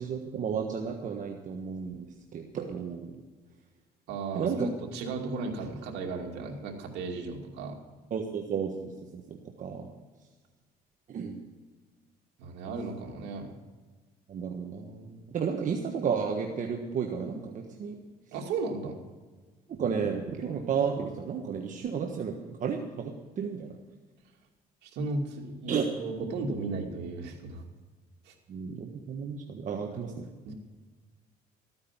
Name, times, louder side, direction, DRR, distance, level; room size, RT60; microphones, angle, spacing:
voice 1, 0.0-2.1 2.3-3.1 4.3-4.7 8.1-9.9 11.1-11.4 14.3-17.9 19.7-23.8 25.7-25.9 28.5-30.3, right 6 dB, 50° right, 2 dB, 1.4 m, -33 dB
voice 2, 4.1-7.8 12.4-13.5 18.3-19.0 24.8-27.6 28.3-28.4 29.9-30.1 30.4-30.5, right 3 dB, 85° right, 1 dB, 2.6 m, -35 dB
14.5 x 9.6 x 6.0 m, 1.3 s
cardioid pair, 110°, 17 cm